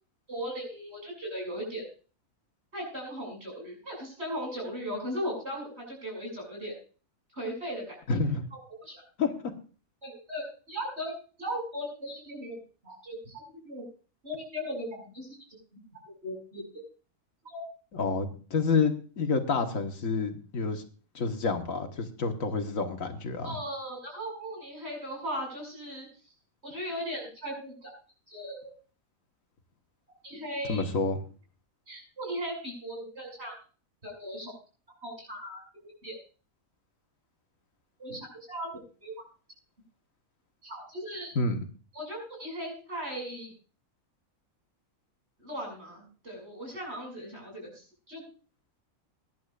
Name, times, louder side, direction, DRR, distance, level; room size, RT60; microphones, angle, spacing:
voice 1, 0.3-1.9 2.7-6.7 7.3-8.0 8.5-9.0 10.0-11.1 11.4-13.8 14.2-15.4 15.7-15.8 16.2-16.8 17.5-17.6 23.4-26.1 26.6-27.9 28.3-28.7 30.2-30.8 31.9-33.6 34.0-34.5 35.0-36.2 38.0-39.1 40.6-41.3 41.9-43.5 45.4-48.2, equal, 50° right, 0 dB, 7.1 m, -38 dB
voice 2, 8.1-8.5 9.2-9.5 17.9-20.8 21.2-23.6 30.7-31.2 41.4-41.6, left 4 dB, 80° left, 5 dB, 1.9 m, -29 dB
22.0 x 11.0 x 2.5 m, 0.37 s
omnidirectional pair, 1.4 m